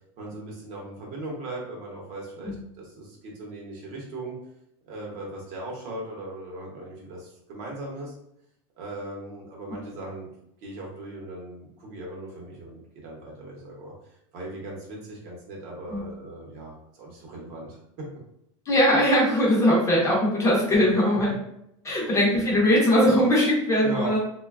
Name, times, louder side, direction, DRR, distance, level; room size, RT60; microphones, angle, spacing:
voice 1, 0.2-4.4 4.8-8.2 8.8-10.3 10.6-13.9 14.3-18.1 20.8-20.9 23.8-24.2, right 1 dB, 40° right, -2 dB, 0.8 m, -38 dB
voice 2, 18.7-21.3 21.8-24.2, equal, 20° left, -5 dB, 0.6 m, -20 dB
3.0 x 2.1 x 2.3 m, 0.77 s
supercardioid pair, 165°, 16 cm